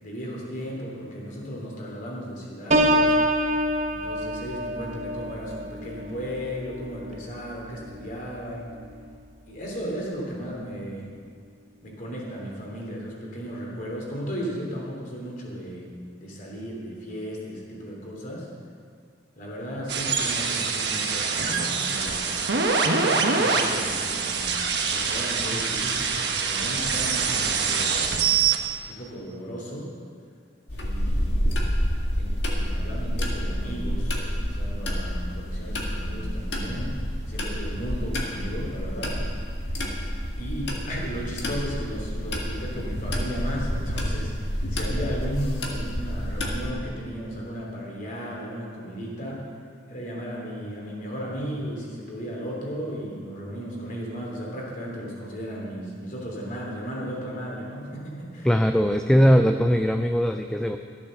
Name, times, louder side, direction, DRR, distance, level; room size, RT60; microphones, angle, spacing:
voice 1, 0.0-3.1 3.9-8.7 9.5-11.0 11.8-15.8 16.2-18.5 19.3-22.4 23.3-24.4 24.9-28.0 28.8-29.9 30.7-31.5 32.2-37.0 37.3-39.2 40.4-49.4 49.9-58.5, equal, 50° left, -3 dB, 3.2 m, -35 dB
Piano, 2.7-8.3 8.8-9.1, equal, 40° right, 1.0 m, -27 dB
sound 1, 19.9-28.6, right 5 dB, 70° right, 1.3 m, -24 dB
sound 2, 30.7-46.7, equal, 75° left, 1.9 m, -29 dB
voice 2, 58.4-60.8, equal, 5° left, 5 dB, 0.4 m, -20 dB
14.0 x 8.5 x 6.5 m, 2.1 s
head